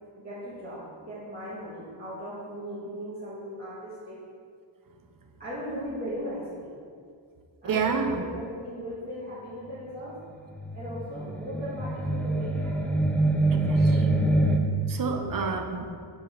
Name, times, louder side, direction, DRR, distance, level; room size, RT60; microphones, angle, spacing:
voice 1, 0.2-4.2 5.4-6.7 7.6-10.1 10.7-12.9 15.0-15.3, equal, 20° right, -12 dB, 1.7 m, -38 dB
voice 2, 7.6-8.2 13.5-14.2 14.9-15.9, right 5 dB, 45° right, 5 dB, 0.7 m, -29 dB
sound 1, 10.5-14.6, right 2 dB, 5° left, 0.4 m, -25 dB
5.2 x 4.5 x 5.8 m, 2.2 s
wide cardioid pair, 100°, 49 cm